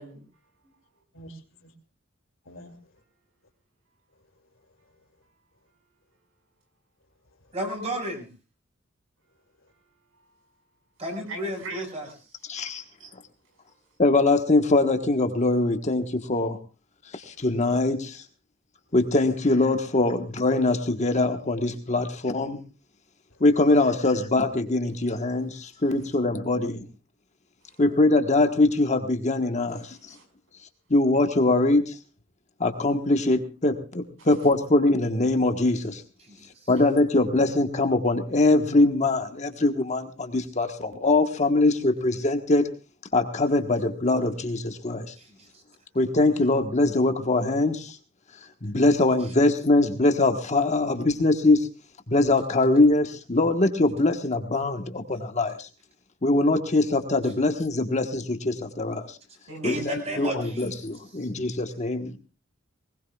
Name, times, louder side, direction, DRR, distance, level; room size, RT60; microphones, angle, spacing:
voice 1, 2.4-3.0 4.1-5.0 7.3-7.5 9.6-9.7 17.3-17.5 23.3-23.4, equal, 85° left, 4 dB, 2.7 m, -50 dB
voice 2, 7.5-8.3 11.0-12.1 36.2-36.4 45.2-45.5 59.6-60.7, equal, 35° right, 3 dB, 5.5 m, -32 dB
voice 3, 9.7-10.4 11.3-13.1 13.5-13.9 25.5-25.8 27.6-27.8 29.7-30.2 34.2-34.5 59.5-60.0, right 2 dB, 85° right, 4 dB, 5.5 m, -44 dB
voice 4, 12.5-12.8 14.0-16.6 17.1-18.2 18.9-22.6 23.4-26.9 27.8-30.0 30.9-31.9 32.6-36.0 36.7-42.7 43.1-45.1 45.9-48.0 48.6-51.7 52.1-55.7 56.2-59.2 59.6-62.2, left 2 dB, 35° left, 6 dB, 1.3 m, -22 dB
21.0 x 20.0 x 2.4 m, 0.33 s
head